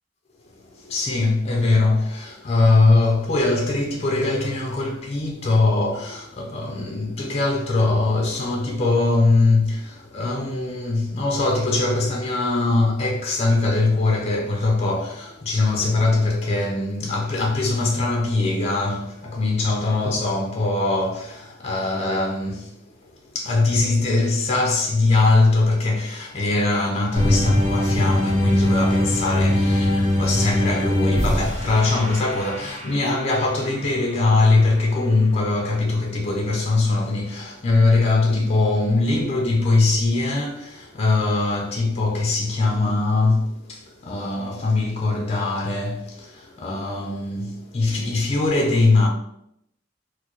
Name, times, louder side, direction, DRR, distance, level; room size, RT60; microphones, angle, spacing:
voice 1, 0.8-22.7 23.3-49.1, left 3 dB, 30° left, 0.4 m, -21 dB
sound 1, 27.1-33.5, left 1 dB, 35° right, 1.3 m, -21 dB
4.3 x 2.0 x 3.0 m
head